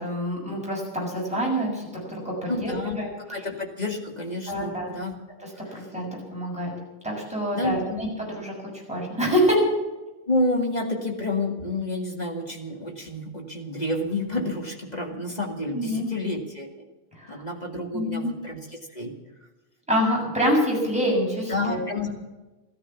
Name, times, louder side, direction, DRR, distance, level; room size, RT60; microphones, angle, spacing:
voice 1, 0.0-3.1 4.5-4.9 5.7-6.7 7.0-8.5 8.9-9.6 15.7-16.1 17.2-17.4 17.9-18.3 19.9-21.8, equal, ahead, -3 dB, 6.7 m, -26 dB
voice 2, 2.5-3.0 3.3-5.1 5.6-5.9 7.5-8.0 10.3-16.7 17.3-19.1 21.5-22.1, left 2 dB, 15° left, 1 dB, 1.6 m, -29 dB
14.5 x 14.0 x 7.1 m, 1.1 s
omnidirectional pair, 3.7 m